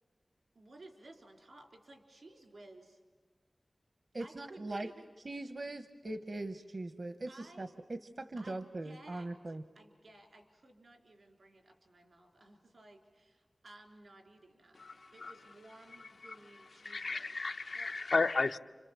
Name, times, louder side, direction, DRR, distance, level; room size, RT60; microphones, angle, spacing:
voice 1, 0.5-3.0 4.2-5.1 7.3-14.8 15.1-17.5 17.7-18.1, right 2 dB, 90° right, 3 dB, 3.7 m, -57 dB
voice 2, 4.1-4.9 5.2-9.6, right 2 dB, 60° right, 9 dB, 0.8 m, -41 dB
voice 3, 14.8-15.3 16.2-16.3 16.8-18.6, left 3 dB, 85° left, 7 dB, 0.7 m, -33 dB
29.5 x 26.5 x 7.3 m, 1.5 s
wide cardioid pair, 70°, 0 cm